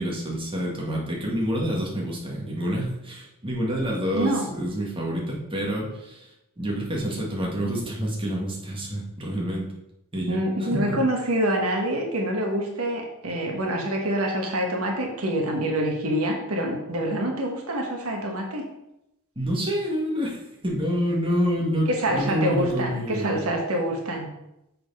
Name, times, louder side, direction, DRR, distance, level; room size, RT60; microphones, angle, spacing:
voice 1, 0.0-6.3 6.6-9.7 10.1-11.0 19.3-23.4, equal, 25° right, -3 dB, 1.6 m, -28 dB
voice 2, 4.1-4.5 10.3-18.6 21.9-24.3, right 1 dB, 75° right, 1 dB, 1.3 m, -26 dB
6.5 x 4.3 x 5.4 m, 0.87 s
head